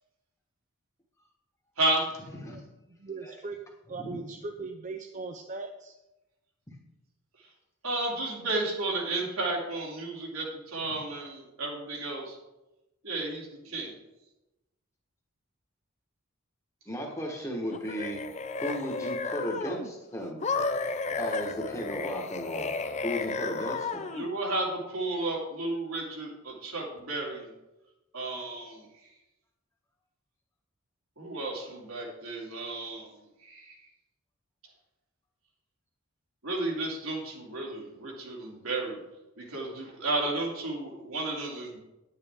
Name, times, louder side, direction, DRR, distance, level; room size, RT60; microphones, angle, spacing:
voice 1, 2.9-3.6 3.9-5.9, right 3 dB, 35° right, 5 dB, 0.5 m, -39 dB
voice 2, 7.8-12.4 13.0-13.9 24.1-27.5 28.1-29.1 31.2-33.9 36.4-39.0 39.4-41.8, right 2 dB, 85° right, -2 dB, 2.7 m, -33 dB
voice 3, 16.9-18.2 18.6-20.4 21.2-22.7 23.0-24.1, equal, 15° left, 1 dB, 1.3 m, -35 dB
sound 1, 17.7-19.9 20.4-24.3, left 4 dB, 30° left, 0.5 m, -33 dB
9.7 x 9.4 x 3.6 m, 0.99 s
head